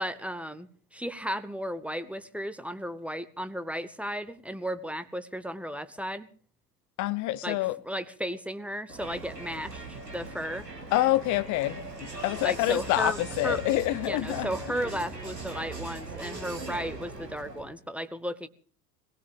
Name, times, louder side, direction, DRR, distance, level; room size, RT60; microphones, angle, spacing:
voice 1, 0.0-6.3 7.4-7.6 7.8-10.7 12.4-13.6 14.0-18.5, equal, 5° right, 12 dB, 0.8 m, -34 dB
voice 2, 7.0-7.8 10.9-14.5, left 16 dB, 40° left, 18 dB, 0.9 m, -27 dB
Crowd, 8.9-17.7, right 3 dB, 90° right, 2.7 m, -40 dB
22.0 x 17.0 x 3.5 m, 0.42 s
figure-of-eight pair, 80°, 48 cm